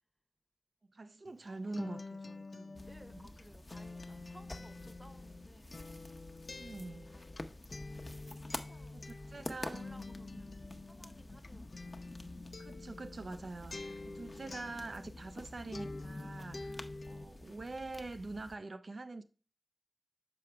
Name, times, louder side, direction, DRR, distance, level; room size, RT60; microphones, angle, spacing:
voice 1, 0.9-2.8 3.1-3.2 6.6-7.2 8.9-9.9 12.6-19.2, right 2 dB, 85° right, 0.4 m, -45 dB
Acoustic guitar, 1.2-15.5 15.7-17.2, left 3 dB, 75° left, 0.3 m, -48 dB
voice 2, 1.4-2.0 2.9-5.8 6.9-9.1 9.4-12.1, right 1 dB, 10° right, 0.8 m, -61 dB
sound 1, 2.8-18.6, left 2 dB, 50° left, 0.7 m, -49 dB
6.9 x 4.7 x 3.4 m
wide cardioid pair, 55°, 0 cm